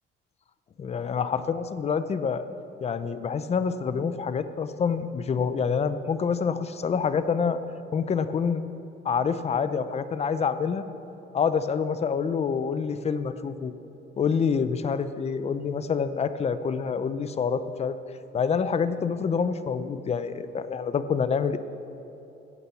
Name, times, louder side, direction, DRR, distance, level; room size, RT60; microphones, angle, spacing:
voice 1, 0.8-2.5 2.8-7.6 7.9-8.6 9.0-10.8 11.3-13.7 14.2-18.0 18.3-21.6, left 6 dB, 30° left, 12 dB, 0.6 m, -27 dB
15.5 x 8.6 x 7.1 m, 3.0 s
cardioid pair, 135°, 20 cm